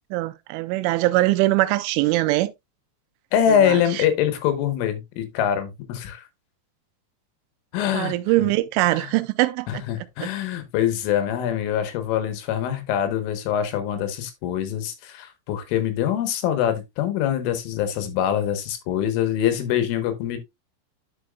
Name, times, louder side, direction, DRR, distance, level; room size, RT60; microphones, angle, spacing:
voice 1, 0.0-2.5 3.5-4.1 7.9-9.8 10.2-10.3, right 18 dB, 85° right, 3.1 m, -22 dB
voice 2, 3.3-6.2 7.7-8.2 8.9-9.1 9.7-20.4, left 10 dB, 90° left, 3.8 m, -24 dB
10.0 x 6.2 x 2.4 m
omnidirectional pair, 5.5 m